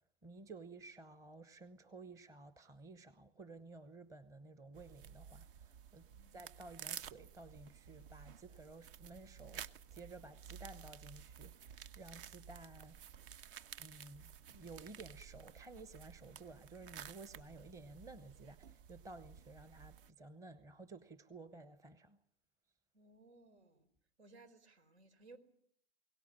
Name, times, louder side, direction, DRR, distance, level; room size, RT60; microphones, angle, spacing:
voice 1, 0.2-6.0 6.3-9.6 9.9-12.9 13.8-22.2, right 3 dB, 10° right, 0.9 m, -54 dB
sound 1, 4.7-20.1, right 9 dB, 55° right, 1.2 m, -53 dB
voice 2, 22.9-23.9 24.2-25.4, right 3 dB, 85° right, 4.5 m, -61 dB
22.0 x 17.5 x 9.6 m
hypercardioid pair, 125°, 32 cm